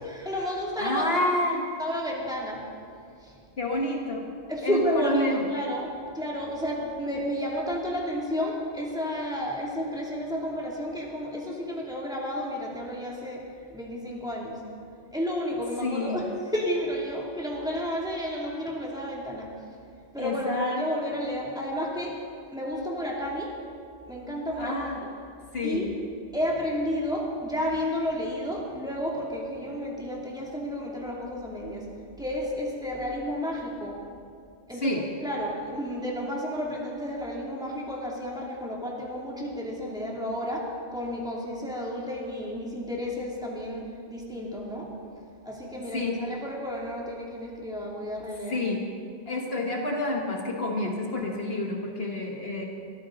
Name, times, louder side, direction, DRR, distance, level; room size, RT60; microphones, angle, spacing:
voice 1, 0.0-1.2 1.8-2.6 3.2-3.4 4.5-13.4 13.7-14.6 15.1-19.5 20.1-22.1 22.5-23.5 24.1-24.9 25.6-26.0 26.3-31.9 32.2-34.0 34.7-44.9 45.4-48.7, equal, 5° right, -4 dB, 2.7 m, -31 dB
voice 2, 0.8-1.7 3.6-4.3 4.6-5.4 15.8-16.2 20.2-20.9 24.6-25.0 25.5-25.9 34.8-35.1 45.9-46.3 48.5-48.8 49.3-52.6, left 1 dB, 60° left, 0 dB, 1.6 m, -28 dB
23.0 x 14.0 x 4.0 m, 2.4 s
omnidirectional pair, 1.2 m